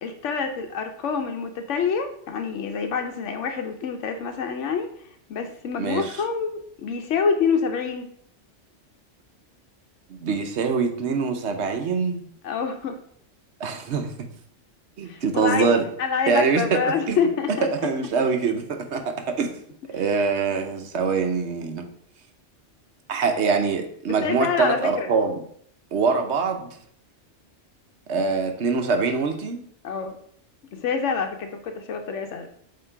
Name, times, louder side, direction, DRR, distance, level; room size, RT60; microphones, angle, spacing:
voice 1, 0.0-4.9 5.3-8.1 12.4-13.0 15.0-15.7 16.0-17.7 24.2-25.1 29.8-30.2 30.7-32.5, left 6 dB, 90° left, 5 dB, 1.0 m, -26 dB
voice 2, 5.8-6.1 10.2-12.2 13.6-14.3 15.0-15.8 16.3-16.8 17.1-17.2 17.5-17.6 17.8-19.5 19.9-21.9 23.1-25.4 25.9-26.7 28.1-29.6, right 5 dB, 70° right, 6 dB, 1.1 m, -24 dB
7.7 x 2.9 x 4.5 m, 0.63 s
omnidirectional pair, 1.2 m